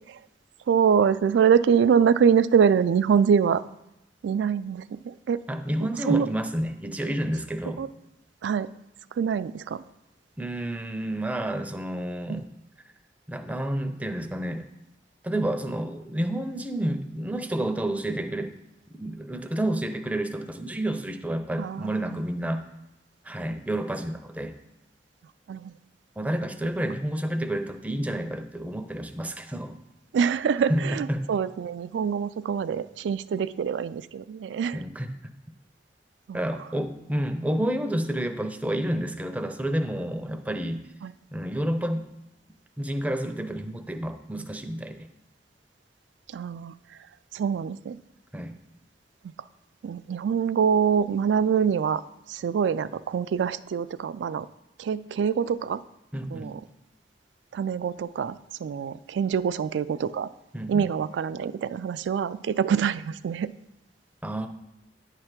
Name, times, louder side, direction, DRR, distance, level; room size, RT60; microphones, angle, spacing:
voice 1, 0.7-3.6 4.2-5.4 6.1-6.3 7.8-7.9 8.4-8.7 9.2-9.8 12.3-12.4 21.6-22.0 25.5-25.7 30.1-34.8 36.3-36.4 41.0-41.1 46.3-46.7 47.3-48.0 49.2-49.3 49.8-52.0 52.3-54.5 54.8-55.8 56.3-56.6 57.5-60.3 60.7-63.5, right 7 dB, 90° right, 15 dB, 0.3 m, -24 dB
voice 2, 5.5-7.8 10.4-12.5 13.3-14.7 15.2-18.5 19.0-22.6 23.2-24.5 26.2-29.8 30.7-31.3 34.7-35.1 36.3-40.8 41.3-42.1 42.8-45.1 48.3-48.6 56.1-56.6 60.5-60.8 64.2-64.5, right 1 dB, 10° right, 7 dB, 0.4 m, -29 dB
9.3 x 3.3 x 5.9 m, 0.86 s
head